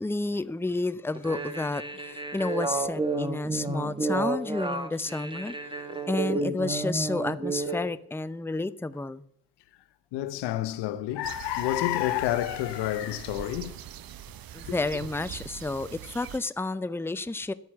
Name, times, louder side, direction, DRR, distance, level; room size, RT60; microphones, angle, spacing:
voice 1, 0.0-5.5 6.1-9.2 14.5-17.5, left 2 dB, 5° left, 0.7 m, -31 dB
sound 1, 1.2-7.9, right 3 dB, 10° right, 1.8 m, -31 dB
voice 2, 10.1-13.8 14.7-14.8, left 14 dB, 80° left, 0.9 m, -29 dB
sound 2, 11.2-16.4, right 10 dB, 60° right, 0.8 m, -43 dB
11.5 x 8.5 x 7.1 m
hypercardioid pair, 45°, 41 cm